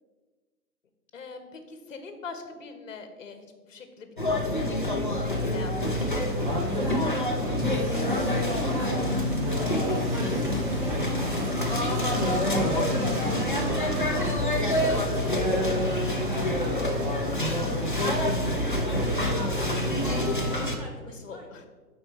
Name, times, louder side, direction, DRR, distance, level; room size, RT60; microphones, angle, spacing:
voice 1, 1.1-7.2 7.5-9.7 14.8-15.1 15.4-15.6 21.1-21.7, left 4 dB, 50° left, 7 dB, 1.1 m, -43 dB
sound 1, 4.2-20.8, left 1 dB, 35° left, 0.4 m, -27 dB
sound 2, 6.3-20.2, left 1 dB, 70° right, 1.4 m, -33 dB
voice 2, 7.9-9.0 10.1-13.6 14.0-17.2 17.8-19.6 20.0-21.5, equal, 25° right, -1 dB, 1.0 m, -46 dB
8.7 x 4.5 x 4.3 m, 1.3 s
hypercardioid pair, 165°, 48 cm